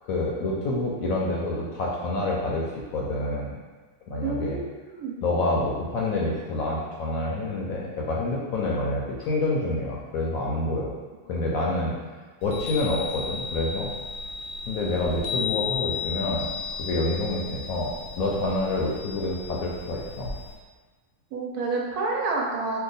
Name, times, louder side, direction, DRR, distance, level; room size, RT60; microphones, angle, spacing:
voice 1, 0.0-3.5 4.1-4.6 5.2-10.9 11.3-11.9 12.4-13.9 14.7-16.5 16.8-20.3, left 2 dB, 70° left, -3 dB, 0.9 m, -27 dB
voice 2, 4.2-5.2 21.3-22.8, right 3 dB, 75° right, -2 dB, 1.1 m, -29 dB
Chime, 12.4-20.5, left 5 dB, 85° left, 1.2 m, -34 dB
2.8 x 2.2 x 3.9 m, 1.4 s
omnidirectional pair, 1.7 m